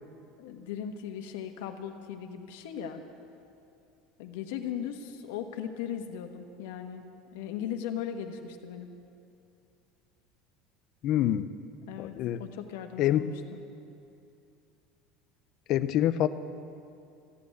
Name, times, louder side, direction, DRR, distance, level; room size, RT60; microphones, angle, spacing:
voice 1, 0.4-3.0 4.2-7.1 7.3-8.9 11.9-13.6, left 9 dB, 90° left, 6 dB, 1.3 m, -38 dB
voice 2, 11.0-11.5 12.0-12.4 13.0-13.2 15.7-16.3, left 12 dB, 40° left, 12 dB, 0.5 m, -26 dB
14.5 x 8.8 x 9.3 m, 2.6 s
cardioid pair, 170°, 0 cm